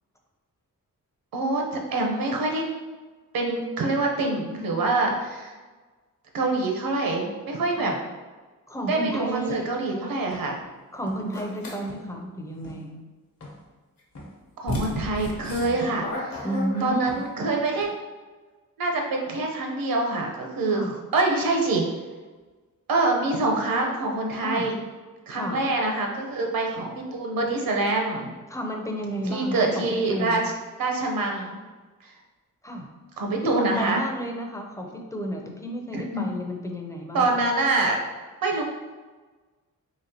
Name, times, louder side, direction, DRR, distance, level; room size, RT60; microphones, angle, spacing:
voice 1, 1.3-2.6 3.3-5.5 6.3-7.9 8.9-10.6 14.6-16.5 16.8-17.9 18.8-21.9 22.9-24.8 25.3-28.3 29.2-30.4 30.8-31.6 33.2-34.0 35.9-36.3 37.1-38.0 38.4-38.6, right 2 dB, 85° right, 1 dB, 0.8 m, -25 dB
voice 2, 8.7-9.7 10.9-13.0 16.4-17.2 20.7-20.9 24.4-24.7 25.3-25.6 28.5-30.4 32.6-32.9 33.4-37.4, equal, 10° left, 2 dB, 0.4 m, -32 dB
sound 1, 9.5-9.7 10.3-10.7 11.0-11.3 11.9-12.1 12.6-12.9 13.4-13.7 14.1-14.4 14.9-15.1 15.5-16.0 16.3-16.7 17.1-17.4 17.8-17.9, equal, 45° left, 0.9 m, -43 dB
sound 2, 11.3-11.8 14.0-14.1 14.7-17.2, left 1 dB, 90° left, 1.1 m, -32 dB
4.1 x 3.2 x 2.8 m, 1.3 s
wide cardioid pair, 135°, 34 cm